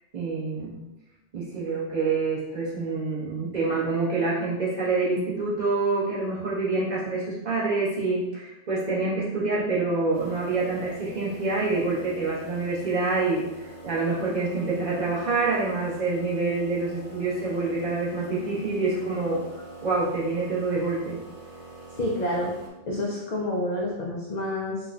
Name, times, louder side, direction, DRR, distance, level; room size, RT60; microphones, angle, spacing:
voice 1, 0.1-0.8 1.3-19.4 19.8-21.2 22.9-23.0, right 3 dB, 40° right, -7 dB, 1.1 m, -27 dB
sound 1, 10.1-22.7, equal, 75° right, 1.0 m, -44 dB
voice 2, 21.9-22.5 22.9-24.9, left 1 dB, 60° left, -3 dB, 0.4 m, -28 dB
4.4 x 2.3 x 2.3 m, 0.96 s
omnidirectional pair, 1.2 m